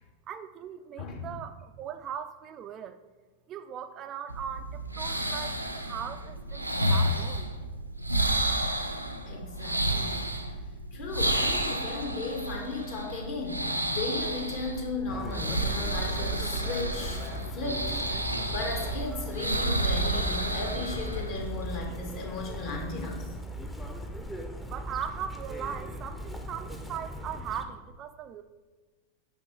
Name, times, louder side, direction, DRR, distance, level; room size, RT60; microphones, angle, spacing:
voice 1, 0.3-3.0 3.5-7.5 24.6-28.4, right 8 dB, 30° right, 10 dB, 0.3 m, -39 dB
voice 2, 1.0-1.3 9.3-10.3 10.9-17.2 17.5-18.0 18.5-23.3, left 3 dB, 50° left, 0 dB, 1.4 m, -36 dB
sound 1, 4.3-21.8, right 1 dB, 90° right, 0.5 m, -31 dB
Chirp tweet, 15.1-27.6, right 1 dB, 10° left, 0.7 m, -38 dB
5.8 x 5.3 x 4.4 m, 1.3 s
figure-of-eight pair, 90°, 0 cm